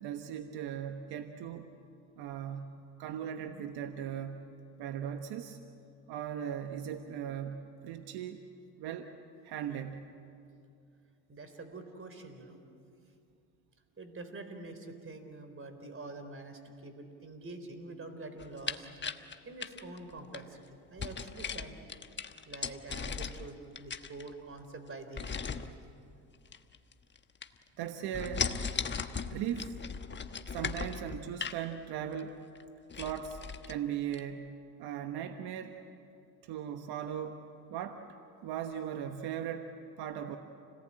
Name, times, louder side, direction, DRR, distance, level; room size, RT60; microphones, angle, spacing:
voice 1, 0.0-1.7 2.2-4.5 4.8-5.6 6.1-8.4 8.8-9.1 9.4-10.1 27.8-28.5 29.3-29.8 30.5-32.4 33.0-34.5 34.8-35.8 36.4-37.4 37.7-38.0 38.4-40.4, right 9 dB, 70° right, 7 dB, 1.3 m, -38 dB
voice 2, 11.3-12.6 14.0-18.9 19.4-20.6 20.9-21.8 22.5-25.5, right 2 dB, 30° right, 7 dB, 4.0 m, -46 dB
sound 1, 18.4-20.4 21.0-23.5 23.8-24.6 25.2-25.7 26.5-27.2 27.4-27.8 28.1-31.6 32.1-32.2 32.5-32.6 32.9-33.8 34.1-34.2, left 6 dB, 25° left, 1.2 m, -37 dB
29.0 x 18.5 x 8.8 m, 2.5 s
supercardioid pair, 75°, 41 cm